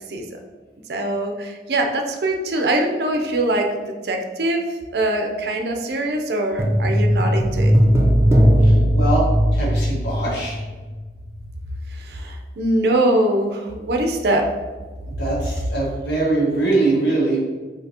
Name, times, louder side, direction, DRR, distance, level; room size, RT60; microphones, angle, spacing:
voice 1, 0.1-0.4 0.9-3.7 4.0-4.6 4.9-7.7 11.9-14.5, right 1 dB, 70° right, 3 dB, 0.5 m, -22 dB
sound 1, 6.6-11.0 11.3-11.4, equal, 15° right, 0.3 m, -17 dB
voice 2, 8.6-9.2 9.5-10.6 15.2-17.4, right 2 dB, 85° left, -5 dB, 1.4 m, -22 dB
5.9 x 2.8 x 2.7 m, 1.3 s
head